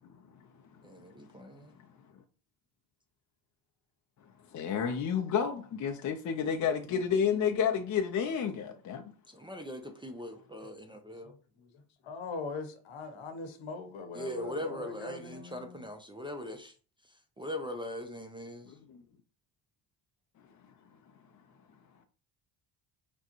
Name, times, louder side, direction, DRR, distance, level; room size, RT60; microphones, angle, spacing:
voice 1, 0.8-1.7 9.3-11.3 14.1-16.7 17.0-18.8, left 1 dB, 10° right, 0.5 m, -41 dB
voice 2, 4.5-9.1 18.7-19.0, left 7 dB, 40° left, 0.5 m, -30 dB
voice 3, 11.2-15.9, left 4 dB, 70° left, 1.1 m, -42 dB
5.8 x 2.2 x 3.0 m
cardioid pair, 80°, 48 cm